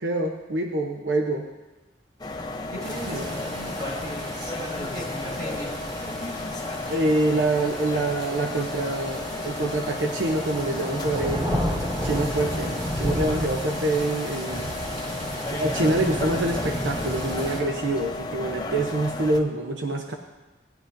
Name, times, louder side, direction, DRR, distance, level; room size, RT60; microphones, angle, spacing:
voice 1, 0.0-1.5 3.1-3.3 6.9-11.5 12.0-14.7 15.5-20.1, right 2 dB, 85° right, 3 dB, 0.8 m, -26 dB
sound 1, 2.2-19.4, left 2 dB, 20° left, 0.6 m, -33 dB
voice 2, 2.7-5.9, equal, 40° right, -2 dB, 2.8 m, -37 dB
sound 2, 2.8-17.6, equal, 20° right, 1.3 m, -32 dB
17.5 x 9.8 x 2.6 m, 1.1 s
head